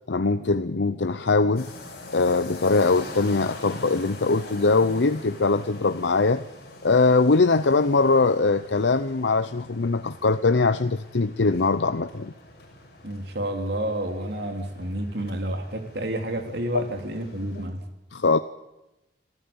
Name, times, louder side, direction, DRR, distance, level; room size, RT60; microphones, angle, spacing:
voice 1, 0.1-1.7 2.1-6.4 6.8-12.3 18.1-18.4, left 3 dB, 90° left, 11 dB, 0.7 m, -21 dB
sound 1, 1.6-17.7, left 2 dB, 65° left, 6.5 m, -44 dB
voice 2, 13.0-17.8, right 1 dB, 65° right, 5 dB, 3.3 m, -30 dB
26.5 x 14.0 x 8.8 m, 0.95 s
head